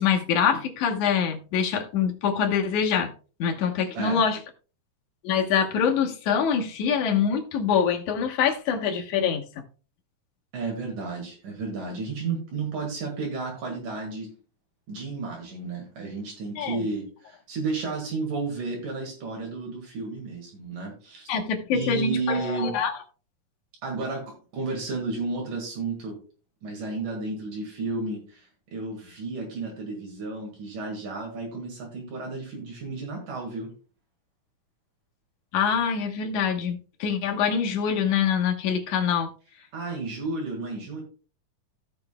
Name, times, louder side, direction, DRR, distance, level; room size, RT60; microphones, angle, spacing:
voice 1, 0.0-3.1 3.4-4.4 5.2-9.4 16.6-16.8 21.3-22.9 35.5-39.3, left 7 dB, 70° left, 2.5 m, -24 dB
voice 2, 10.5-14.3 14.9-21.3 21.7-22.7 23.8-26.2 26.6-33.7 39.7-41.0, right 3 dB, 70° right, 3.4 m, -32 dB
17.0 x 5.9 x 2.2 m
omnidirectional pair, 3.8 m